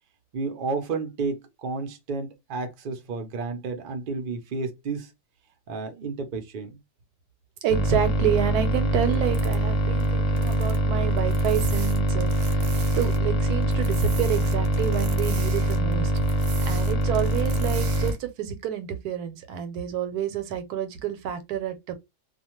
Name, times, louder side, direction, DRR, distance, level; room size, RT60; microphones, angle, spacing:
voice 1, 0.3-5.1 5.7-6.8, right 4 dB, 50° right, 0.6 m, -31 dB
voice 2, 7.6-16.1 16.7-21.9, right 9 dB, 85° right, 1.1 m, -29 dB
sound 1, 7.7-18.1, right 1 dB, 65° left, 0.9 m, -24 dB
sound 2, 9.1-9.6 10.0-10.1 10.4-10.8 11.1-13.2 13.5-18.2, right 6 dB, 70° right, 0.9 m, -41 dB
2.4 x 2.2 x 2.9 m
omnidirectional pair, 1.6 m